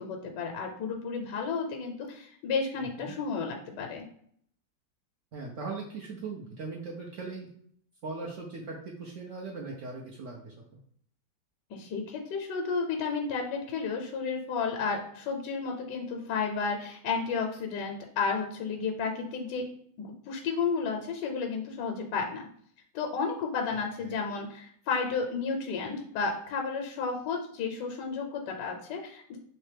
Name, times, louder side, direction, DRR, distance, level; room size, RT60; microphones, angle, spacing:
voice 1, 0.0-4.1 11.7-19.6 20.0-22.4 22.9-29.4, left 5 dB, 80° left, 2 dB, 1.2 m, -32 dB
voice 2, 2.8-3.1 5.3-7.5 8.0-10.5 23.7-23.8 24.0-24.1, right 3 dB, 65° right, -2 dB, 0.8 m, -39 dB
3.2 x 3.0 x 3.3 m, 0.64 s
omnidirectional pair, 1.9 m